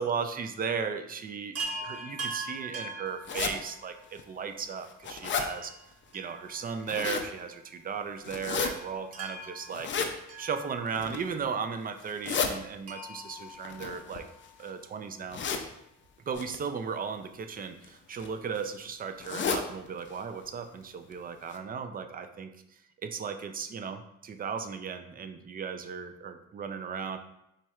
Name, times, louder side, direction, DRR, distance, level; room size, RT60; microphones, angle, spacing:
voice 1, 0.0-1.6 1.8-5.7 6.1-9.9 10.4-14.2 14.6-15.4 16.3-22.5 23.0-27.2, right 6 dB, 30° right, 8 dB, 0.4 m, -36 dB
Chime, 1.5-4.0 5.4-6.9 7.2-7.3 8.5-11.2 12.8-14.5 16.0-16.1 16.3-16.4, right 3 dB, 55° right, 0.8 m, -41 dB
sound 1, 3.3-3.5 4.2-4.3 4.7-5.5 6.6-7.3 8.2-8.7 9.7-10.1 10.9-11.3 12.0-12.5 13.6-14.6 15.3-15.7 16.3-16.6 17.6-17.9 18.2-18.3 18.5-18.6 19.2-19.6 20.1-20.2 20.4-20.5 21.1-21.2 21.5-21.6, left 6 dB, 40° left, 0.5 m, -32 dB
4.4 x 3.2 x 2.3 m, 0.84 s
cardioid pair, 90°, 30 cm